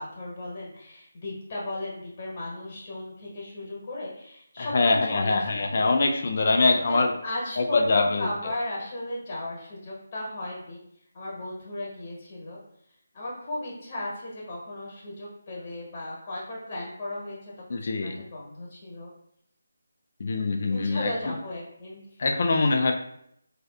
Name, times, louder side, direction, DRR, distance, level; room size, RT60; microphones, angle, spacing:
voice 1, 0.0-4.7 5.0-5.9 6.7-10.8 11.1-12.6 13.1-19.1 20.7-22.2, left 1 dB, 30° left, -4 dB, 1.1 m, -36 dB
voice 2, 4.6-7.1 7.6-8.3 17.7-18.2 20.2-21.1 22.2-22.9, left 3 dB, 45° left, 3 dB, 0.3 m, -23 dB
4.0 x 2.4 x 2.3 m, 0.74 s
figure-of-eight pair, 155°, 0 cm